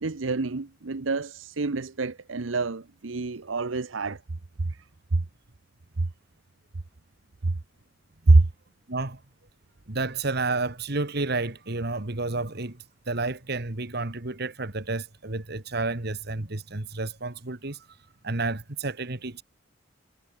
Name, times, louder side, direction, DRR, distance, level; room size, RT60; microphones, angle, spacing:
voice 1, 0.0-4.2 5.1-5.2 6.0-6.1 7.4-7.5 8.3-8.5, right 3 dB, 80° right, 0.9 m, -25 dB
voice 2, 8.9-9.2 9.9-17.8 18.2-19.4, right 3 dB, 55° right, 1.8 m, -31 dB
head